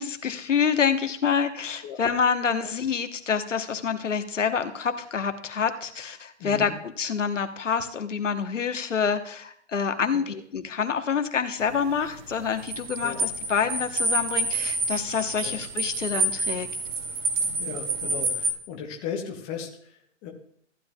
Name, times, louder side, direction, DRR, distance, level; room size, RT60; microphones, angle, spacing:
voice 1, 0.0-6.7 7.0-16.7, left 6 dB, 80° left, 8 dB, 1.2 m, -27 dB
voice 2, 6.4-6.8 10.1-10.2 13.0-13.2 15.4-15.6 17.6-20.3, left 6 dB, 10° left, 1 dB, 0.3 m, -36 dB
sound 1, 11.6-18.5, right 2 dB, 75° right, 2.4 m, -28 dB
15.0 x 9.4 x 2.3 m, 0.65 s
figure-of-eight pair, 120°, 37 cm